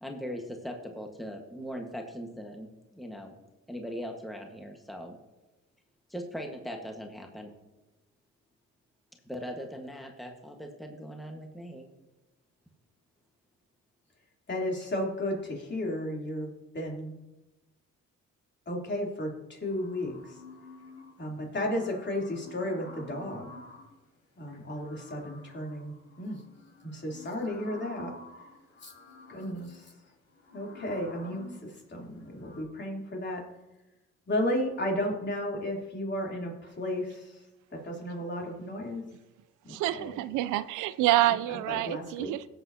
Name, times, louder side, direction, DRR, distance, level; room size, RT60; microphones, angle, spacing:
voice 1, 0.0-3.3 3.7-5.2 6.1-7.5 9.2-11.9, equal, ahead, 2 dB, 1.5 m, -40 dB
voice 2, 14.5-16.5 16.7-17.1 18.7-20.4 21.2-23.5 24.4-26.4 26.8-28.2 28.8-28.9 29.3-29.9 30.5-33.4 34.3-37.4 37.7-39.0 39.6-40.2 41.5-42.3, left 1 dB, 35° left, -1 dB, 3.2 m, -34 dB
sound 1, 19.6-21.2 21.5-24.0 24.5-32.6, left 2 dB, 55° left, 4.2 m, -50 dB
voice 3, 39.7-42.5, right 15 dB, 90° right, 16 dB, 0.5 m, -27 dB
17.5 x 7.9 x 2.8 m, 1.0 s
cardioid pair, 90°, 30 cm